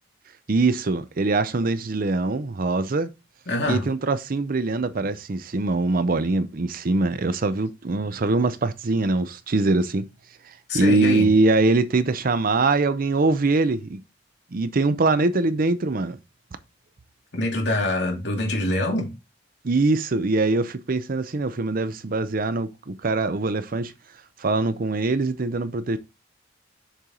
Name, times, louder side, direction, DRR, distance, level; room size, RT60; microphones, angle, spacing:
voice 1, 0.5-3.1 3.7-10.1 10.7-14.0 14.5-16.2 19.6-23.9 24.4-26.0, right 3 dB, 50° right, 0.6 m, -23 dB
voice 2, 3.5-3.8 10.7-11.3 17.3-19.1, left 1 dB, 65° left, 2.5 m, -24 dB
6.8 x 4.5 x 3.7 m
head